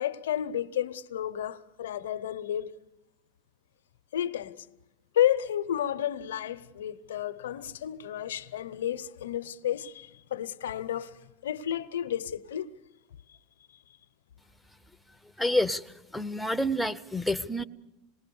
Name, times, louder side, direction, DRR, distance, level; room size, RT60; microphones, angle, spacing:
voice 1, 0.0-2.7 4.1-4.7 5.1-11.2 11.4-12.7, left 11 dB, 85° left, 0.8 m, -31 dB
voice 2, 15.4-17.6, left 1 dB, 5° left, 0.8 m, -28 dB
27.0 x 20.0 x 7.0 m
hypercardioid pair, 105°, 0 cm